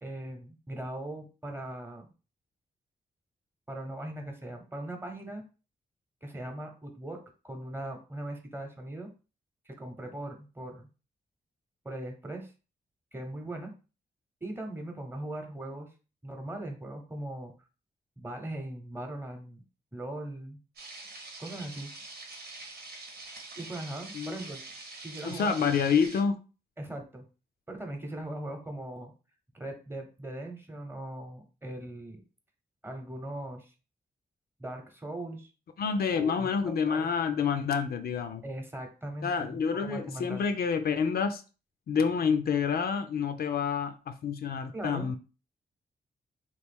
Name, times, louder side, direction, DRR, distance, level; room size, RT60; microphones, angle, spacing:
voice 1, 0.0-2.1 3.7-5.4 6.2-7.2 7.4-9.1 9.7-10.9 11.8-12.5 13.1-13.7 14.4-15.9 16.2-17.5 18.2-19.6 19.9-20.6 21.4-21.9 23.6-24.6 25.0-25.5 26.8-27.2 27.7-29.1 29.5-32.2 32.8-33.7 34.6-35.5 36.1-36.5 36.9-37.1 38.4-40.5 44.7-45.2, right 1 dB, 15° right, 0.9 m, -39 dB
sound 1, 20.8-26.2, right 2 dB, 75° right, 1.0 m, -45 dB
voice 2, 25.2-26.4 35.8-38.4 39.2-41.4 41.9-45.2, left 6 dB, 65° left, 0.4 m, -28 dB
3.1 x 2.4 x 3.5 m
cardioid pair, 75°, 17 cm